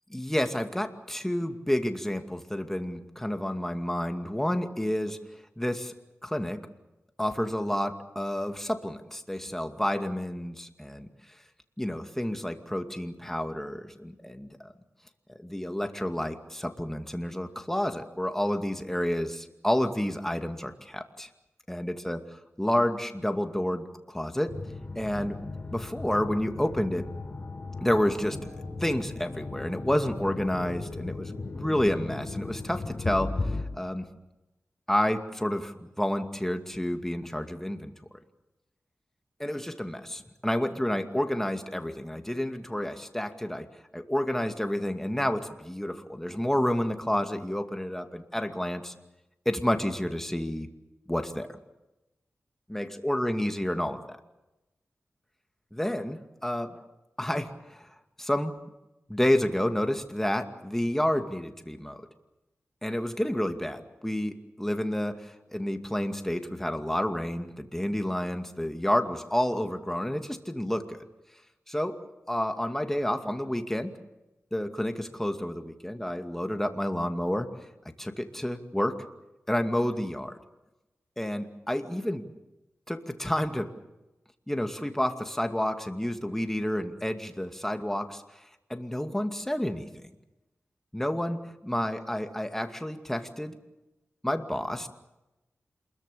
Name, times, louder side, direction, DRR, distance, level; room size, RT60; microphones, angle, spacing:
voice 1, 0.1-5.2 5.6-5.9 6.2-6.6 7.2-11.1 11.8-14.7 15.3-21.3 21.7-22.2 22.6-24.6 25.0-25.4 25.7-27.1 27.8-28.4 28.8-33.4 33.7-34.1 34.9-37.9 39.4-43.7 43.9-48.9 49.5-50.7 51.1-51.5 52.7-54.2 55.7-56.8 57.2-57.9 58.2-58.5 59.1-62.1 62.8-71.0 71.7-72.0 72.3-73.9 74.5-77.5 78.0-79.0 79.5-80.4 81.2-82.2 82.9-83.7 84.5-88.2 88.7-89.9 90.9-93.6 94.2-94.9, left 1 dB, 10° left, 6 dB, 2.3 m, -30 dB
sound 1, 24.5-33.6, left 3 dB, 40° left, 4.8 m, -36 dB
27.5 x 22.0 x 6.9 m, 0.99 s
wide cardioid pair, 70°, 5 cm